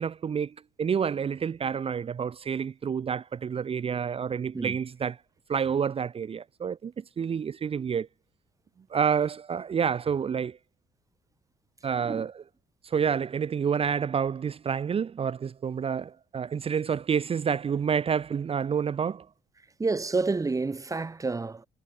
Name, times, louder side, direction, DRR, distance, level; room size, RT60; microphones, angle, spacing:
voice 1, 0.0-5.2 5.5-8.1 8.9-10.6 11.8-12.4 12.8-19.3, right 7 dB, 35° right, 1.0 m, -29 dB
voice 2, 19.8-21.7, right 3 dB, 20° right, 2.1 m, -29 dB
cardioid pair, 110°, 17 cm